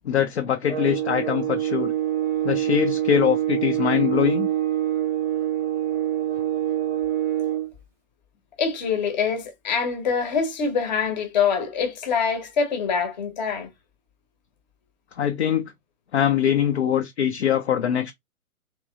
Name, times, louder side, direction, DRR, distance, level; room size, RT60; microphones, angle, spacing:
voice 1, 0.0-1.9 2.4-4.5 15.2-15.7 16.1-18.1, left 9 dB, 50° left, 0.5 m, -23 dB
sound 1, 0.7-7.7, right 12 dB, 5° right, 0.5 m, -25 dB
voice 2, 8.6-13.7, left 6 dB, 30° left, 0.9 m, -24 dB
3.0 x 2.9 x 2.4 m
figure-of-eight pair, 130°, 43 cm